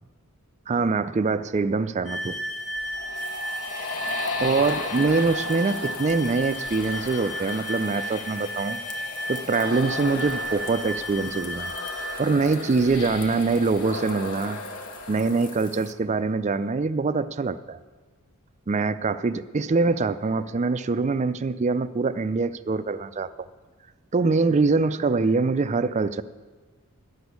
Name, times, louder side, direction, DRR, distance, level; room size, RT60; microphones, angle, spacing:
voice 1, 0.7-2.4 4.4-8.8 9.3-11.7 12.2-14.6 15.1-17.8 18.7-23.5 24.1-26.2, right 4 dB, 30° right, 13 dB, 0.4 m, -24 dB
sound 1, 2.0-12.2, equal, ahead, 1.2 m, -34 dB
sound 2, 2.6-16.1, left 2 dB, 65° left, 1.3 m, -35 dB
sound 3, 3.1-15.9, left 6 dB, 40° left, 0.9 m, -47 dB
12.5 x 6.1 x 9.5 m, 1.4 s
head